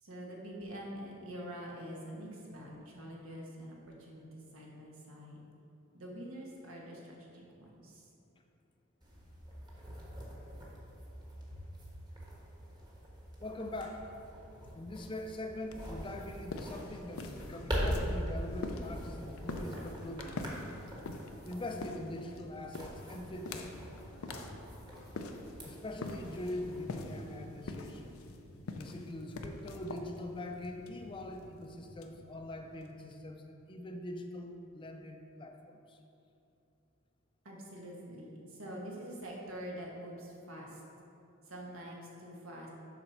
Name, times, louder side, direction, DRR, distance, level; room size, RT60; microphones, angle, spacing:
voice 1, 0.0-5.4 5.9-8.1 11.5-11.6 37.4-40.8 41.4-42.7, equal, 80° right, -3 dB, 1.4 m, -46 dB
sound 1, 9.0-28.1, equal, 20° right, 1.2 m, -43 dB
voice 2, 13.4-14.2 14.7-20.5 21.4-23.7 25.6-28.2 28.7-36.0, left 1 dB, 25° left, 4 dB, 0.4 m, -43 dB
sound 2, 15.6-33.1, left 2 dB, 90° left, 0.5 m, -45 dB
6.7 x 4.3 x 5.8 m, 2.7 s
head